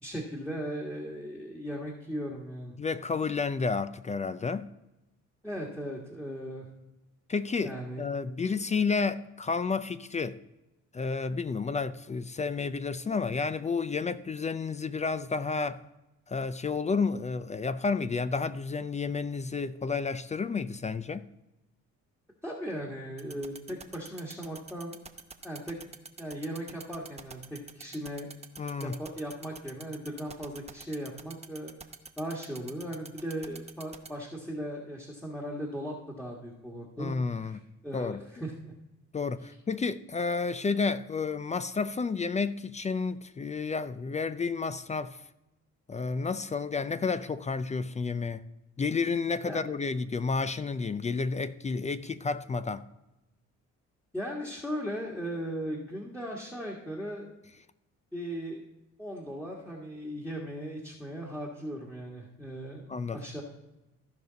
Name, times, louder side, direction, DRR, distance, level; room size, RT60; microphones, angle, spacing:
voice 1, 0.0-2.8 5.4-6.7 7.6-8.1 22.4-25.0 25.4-25.8 26.2-28.3 28.8-31.7 32.2-37.1 37.4-38.7 49.5-49.6 54.1-57.3 58.1-58.6 59.0-63.4, equal, 5° left, 1.5 m, -38 dB
voice 2, 2.8-4.7 7.3-10.4 10.9-15.8 16.3-21.3 28.6-29.0 37.0-37.6 37.9-38.4 39.1-45.2 45.9-48.4 48.8-52.8 62.9-63.2, left 4 dB, 25° left, 0.4 m, -31 dB
sound 1, 23.2-34.1, right 4 dB, 20° right, 0.8 m, -44 dB
14.5 x 5.1 x 3.9 m
cardioid pair, 90°, 30 cm